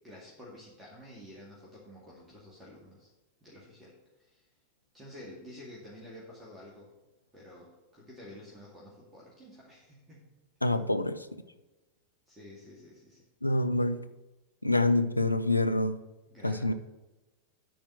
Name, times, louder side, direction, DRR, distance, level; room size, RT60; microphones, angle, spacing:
voice 1, 0.0-3.1 3.4-4.5 4.9-6.9 7.3-10.3 10.7-10.8 12.3-13.2 16.3-16.7, left 1 dB, 15° right, 2.2 m, -50 dB
voice 2, 10.6-11.3 13.4-14.0 14.6-16.0 16.4-16.7, left 2 dB, 85° left, 0.5 m, -26 dB
10.0 x 4.4 x 7.4 m
figure-of-eight pair, 90°, 0 cm